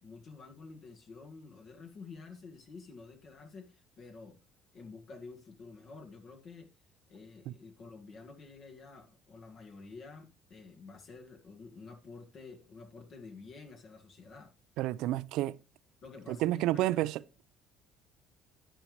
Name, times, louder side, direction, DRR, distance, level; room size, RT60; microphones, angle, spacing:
voice 1, 0.0-4.4 4.7-6.7 7.1-14.5 16.0-17.1, left 4 dB, 50° left, 1.6 m, -50 dB
voice 2, 14.8-15.6 16.3-17.2, right 15 dB, 75° right, 0.5 m, -30 dB
10.5 x 10.0 x 3.1 m
cardioid pair, 115°, 0 cm